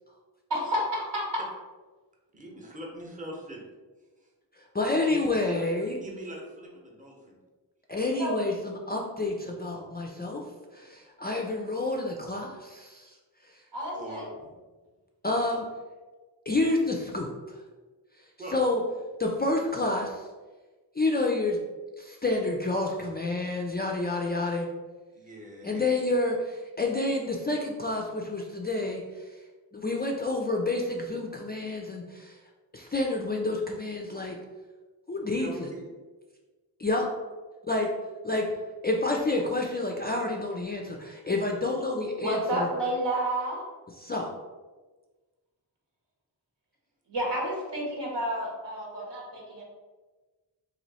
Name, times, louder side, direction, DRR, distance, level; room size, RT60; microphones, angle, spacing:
voice 1, 0.5-1.4 8.2-8.3 13.7-14.3 42.2-43.6 47.1-49.2 49.6-49.7, right 1 dB, 75° right, -3 dB, 1.3 m, -30 dB
voice 2, 2.3-3.7 4.8-5.6 6.0-7.4 13.9-14.5 18.4-18.6 25.1-26.0 35.4-35.9, right 1 dB, 20° right, -2 dB, 0.8 m, -42 dB
voice 3, 4.6-6.0 7.9-10.4 10.7-13.1 15.2-15.7 16.5-17.6 18.5-18.8 19.2-20.3 21.0-21.6 22.0-24.7 25.6-29.3 29.7-32.4 32.7-34.4 35.1-35.7 36.8-37.1 37.7-37.9 38.2-38.5 38.8-42.7 44.0-44.3, left 2 dB, 25° left, 0 dB, 0.3 m, -29 dB
3.0 x 2.6 x 4.1 m, 1.3 s
wide cardioid pair, 95°, 43 cm